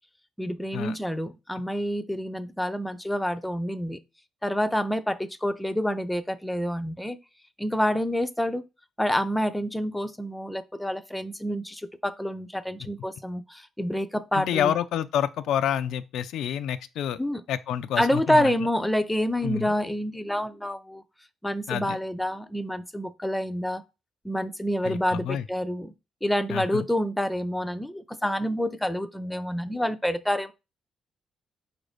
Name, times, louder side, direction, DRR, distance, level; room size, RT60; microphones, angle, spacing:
voice 1, 0.4-4.0 4.4-7.2 7.6-8.6 9.0-14.7 17.2-17.4 18.0-21.0 21.4-23.8 24.2-25.9 26.2-30.5, equal, 5° left, 0.4 m, -28 dB
voice 2, 14.3-17.2 17.5-18.5 19.4-19.7 21.7-22.0 24.8-25.4 26.5-26.9, left 10 dB, 80° left, 0.3 m, -28 dB
4.2 x 2.6 x 4.9 m
cardioid pair, 90°, 0 cm